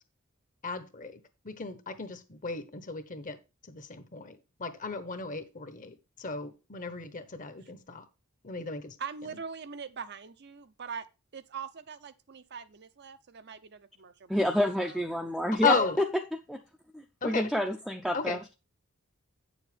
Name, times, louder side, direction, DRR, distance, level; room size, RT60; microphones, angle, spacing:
voice 1, 0.6-3.4 3.6-8.0 8.4-9.0 15.6-16.0 17.2-17.5 18.1-18.4, left 4 dB, 40° left, 1.0 m, -34 dB
voice 2, 9.0-11.1 11.3-14.4 14.8-15.1, right 6 dB, 50° right, 0.6 m, -42 dB
voice 3, 14.3-15.8 16.5-16.6 16.9-18.5, equal, ahead, 0.5 m, -29 dB
8.9 x 7.2 x 3.4 m
head